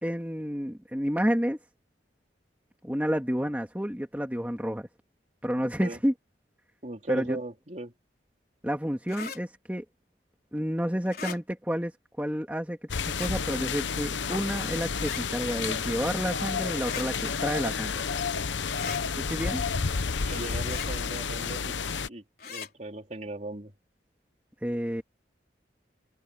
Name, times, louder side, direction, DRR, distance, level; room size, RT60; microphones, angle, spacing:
voice 1, 0.0-1.6 2.8-4.9 5.4-6.1 7.1-7.4 8.6-9.8 10.5-11.9 12.2-12.8 13.0-18.0 19.3-19.6 24.6-25.0, equal, 10° right, 2.3 m, -30 dB
voice 2, 5.6-6.0 6.8-7.9 20.2-21.8 22.1-23.7, right 2 dB, 40° right, 3.4 m, -38 dB
sound 1, 9.1-9.4 11.1-11.4 13.0-13.3 15.0-15.2 16.8-17.1 18.8-19.0 20.6-20.9 22.4-22.7, left 6 dB, 55° left, 4.6 m, -38 dB
sound 2, 12.9-22.1, left 5 dB, 80° left, 0.9 m, -31 dB
open air
head